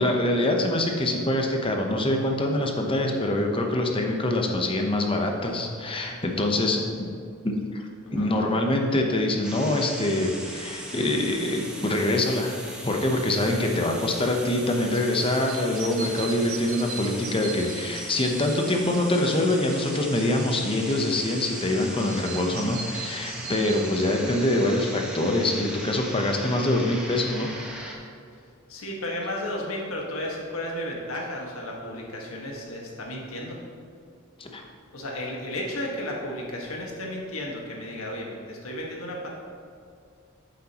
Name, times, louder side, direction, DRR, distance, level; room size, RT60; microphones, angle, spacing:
voice 1, 0.0-6.8 7.4-27.5 34.4-34.6, left 1 dB, 25° left, 2 dB, 0.8 m, -25 dB
voice 2, 6.5-7.0 8.2-8.3 28.7-33.6 34.9-39.3, left 1 dB, 85° left, -2 dB, 1.6 m, -33 dB
sound 1, 9.4-27.9, right 1 dB, 5° right, 1.1 m, -39 dB
sound 2, 14.9-24.0, right 4 dB, 85° right, 1.0 m, -40 dB
9.0 x 7.5 x 3.0 m, 2.3 s
head